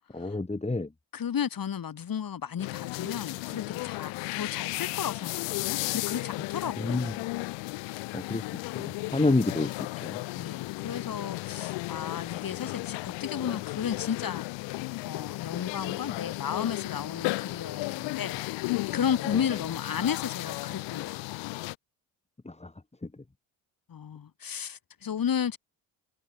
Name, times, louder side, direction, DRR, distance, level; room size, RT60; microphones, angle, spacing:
voice 1, 0.1-0.9 6.8-7.1 8.1-8.4 8.7-9.7 10.0-10.2 22.4-22.7, left 2 dB, 15° left, 3.3 m, -28 dB
voice 2, 1.1-7.0 9.1-9.4 10.3-14.4 15.0-21.4 23.9-25.6, left 8 dB, 50° left, 6.3 m, -33 dB
sound 1, 2.6-21.7, left 23 dB, 80° left, 1.8 m, -34 dB
supercardioid pair, 65°, 44 cm